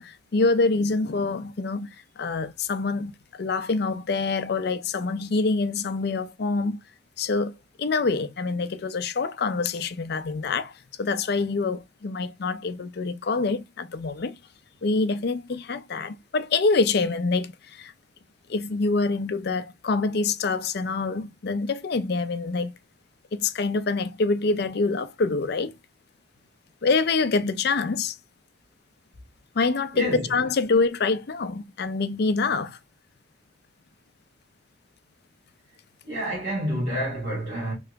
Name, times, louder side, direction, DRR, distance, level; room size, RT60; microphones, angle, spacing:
voice 1, 0.0-6.8 7.2-7.5 7.8-10.7 11.0-14.4 14.8-17.9 18.5-22.7 23.3-25.7 26.8-28.2 29.6-32.8, left 3 dB, 60° left, 0.5 m, -26 dB
voice 2, 29.9-30.3 36.0-37.7, equal, 55° right, 2.8 m, -28 dB
4.6 x 3.0 x 3.4 m
head